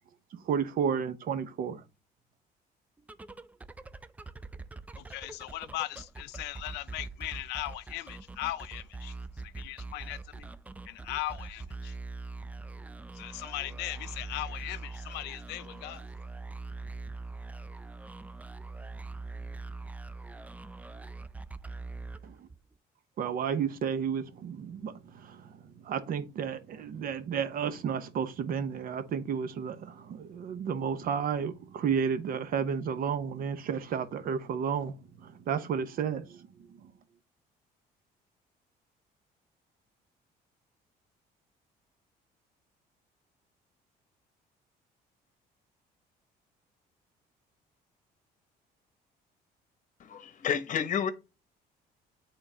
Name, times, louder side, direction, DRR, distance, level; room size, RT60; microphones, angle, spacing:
voice 1, 0.4-1.8 22.2-22.3 23.2-25.5 25.8-36.5 36.8-36.9, right 7 dB, 60° right, 0.9 m, -32 dB
sound 1, 3.0-22.7, right 3 dB, 10° right, 0.3 m, -43 dB
voice 2, 5.0-9.1 9.6-10.5 10.9-11.9 13.2-16.1, left 16 dB, 85° left, 0.5 m, -38 dB
voice 3, 50.0-51.1, left 8 dB, 50° left, 0.9 m, -30 dB
8.8 x 3.8 x 2.8 m
cardioid pair, 110°, 17 cm